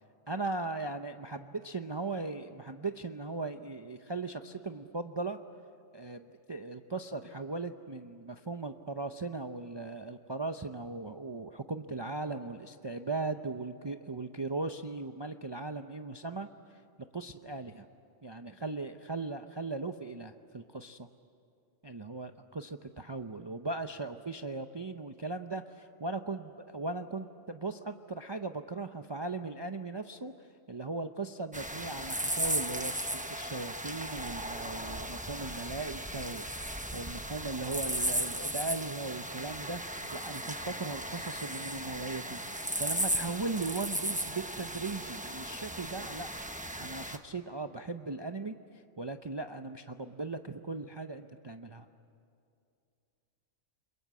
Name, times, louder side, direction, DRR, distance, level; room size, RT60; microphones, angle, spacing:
voice 1, 0.3-5.4 5.9-16.5 17.1-17.9 18.2-21.1 21.8-30.3 30.7-46.3 46.8-51.9, right 3 dB, 30° right, 7 dB, 0.5 m, -38 dB
sound 1, 31.5-47.2, right 1 dB, 5° right, 1.0 m, -36 dB
29.5 x 22.0 x 8.3 m, 2.5 s
omnidirectional pair, 1.3 m